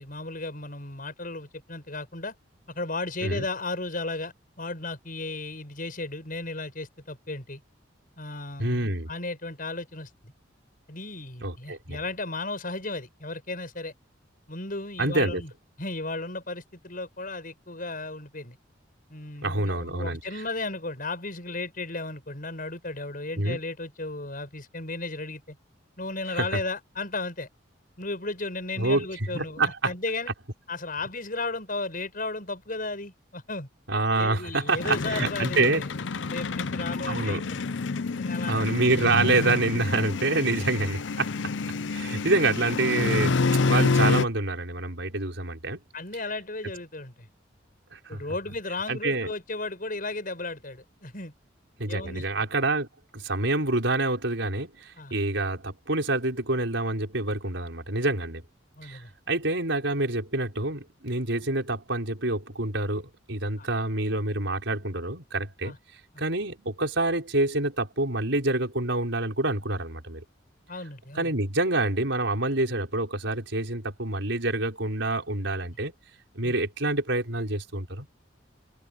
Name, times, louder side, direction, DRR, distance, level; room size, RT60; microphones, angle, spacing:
voice 1, 0.0-2.3 2.7-7.6 8.2-10.3 10.9-13.9 14.5-15.5 15.8-18.6 19.1-25.6 26.0-27.5 28.0-30.3 30.7-33.7 34.2-35.9 36.3-37.6 38.1-38.7 45.9-47.3 48.1-51.3 51.9-52.3 55.0-55.2 58.8-59.1 63.6-63.7 65.6-65.8 66.1-66.2 70.7-71.3 76.4-76.6, left 2 dB, 45° left, 7.7 m, -35 dB
voice 2, 8.6-9.1 11.4-12.0 15.0-15.4 19.4-20.2 23.4-23.6 26.3-26.5 28.8-29.1 29.3-29.9 33.9-35.8 37.1-37.4 38.5-41.3 41.9-45.8 47.9-48.2 48.9-49.3 51.8-52.9 53.1-58.4 58.8-65.7 66.2-70.2 71.2-75.9 76.4-78.1, right 2 dB, 75° right, 5.3 m, -27 dB
sound 1, 34.7-44.2, left 4 dB, 70° left, 0.7 m, -28 dB
head